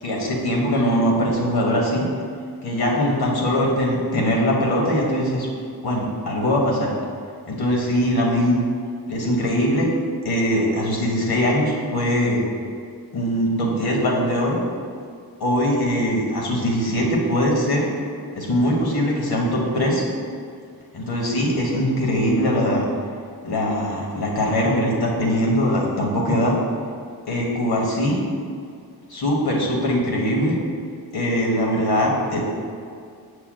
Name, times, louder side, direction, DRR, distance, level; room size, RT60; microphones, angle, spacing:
voice 1, 0.0-2.0 2.6-5.5 5.8-6.9 7.5-8.6 9.1-9.9 10.2-12.4 13.1-14.6 15.4-17.9 18.3-20.0 20.9-22.9 23.4-26.5 27.3-28.2 29.1-30.5 31.1-32.4, equal, 85° left, -2 dB, 1.3 m, -21 dB
7.3 x 6.6 x 2.3 m, 2.2 s
wide cardioid pair, 170°, 37 cm